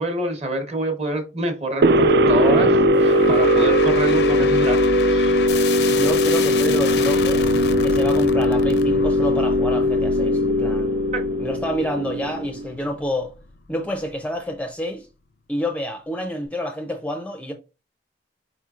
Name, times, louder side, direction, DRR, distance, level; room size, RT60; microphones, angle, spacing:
voice 1, 0.0-5.4 11.1-11.2, right 1 dB, 35° right, 1.0 m, -26 dB
sound 1, 1.8-12.7, equal, 60° right, 0.3 m, -19 dB
sound 2, 2.9-14.2, left 5 dB, 70° left, 0.5 m, -31 dB
voice 2, 5.9-7.5 7.8-10.9 11.4-13.3 13.7-15.1 15.5-17.5, equal, 10° left, 0.4 m, -28 dB
4.3 x 4.2 x 2.4 m
head